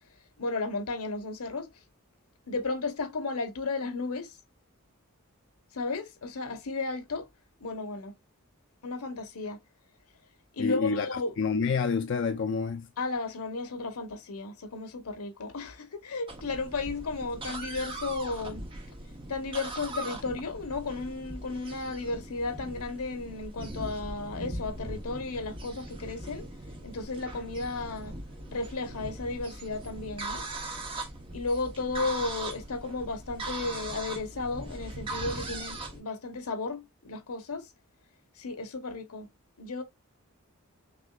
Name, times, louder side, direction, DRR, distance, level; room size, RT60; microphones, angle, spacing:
voice 1, 0.4-1.7 2.5-4.4 5.7-7.3 7.6-8.1 8.8-9.6 10.5-11.3 13.0-18.6 19.3-26.5 26.8-28.1 28.5-30.4 31.3-37.7 38.4-39.3 39.6-39.8, left 3 dB, 90° left, 1.0 m, -34 dB
voice 2, 10.6-11.1 11.4-12.9, left 5 dB, 55° left, 0.4 m, -28 dB
sound 1, 16.3-36.0, right 2 dB, 25° right, 1.0 m, -40 dB
6.1 x 2.9 x 2.3 m
head